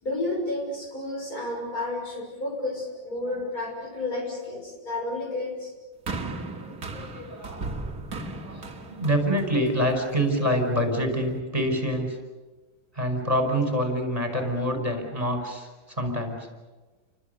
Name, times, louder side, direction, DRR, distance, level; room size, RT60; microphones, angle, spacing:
voice 1, 0.0-5.7, left 2 dB, 50° left, 0 dB, 6.7 m, -31 dB
sound 1, 6.1-10.4 11.2-11.3, right 3 dB, 50° right, 2.4 m, -36 dB
voice 2, 6.6-7.7 8.4-12.2 12.9-16.5, equal, 20° right, 4 dB, 5.3 m, -26 dB
30.0 x 25.0 x 6.8 m, 1.2 s
omnidirectional pair, 2.0 m